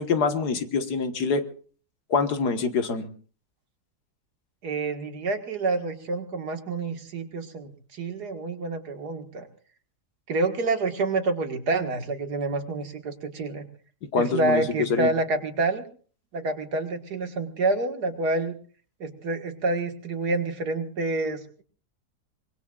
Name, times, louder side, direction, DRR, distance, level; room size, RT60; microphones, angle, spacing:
voice 1, 0.0-1.4 2.1-3.1 14.1-15.1, left 4 dB, 90° left, 7 dB, 2.0 m, -25 dB
voice 2, 4.6-9.5 10.3-13.7 14.2-15.8 16.3-18.5 19.0-21.6, right 2 dB, 90° right, 5 dB, 2.3 m, -28 dB
24.5 x 22.0 x 2.4 m, 0.42 s
omnidirectional pair, 1.7 m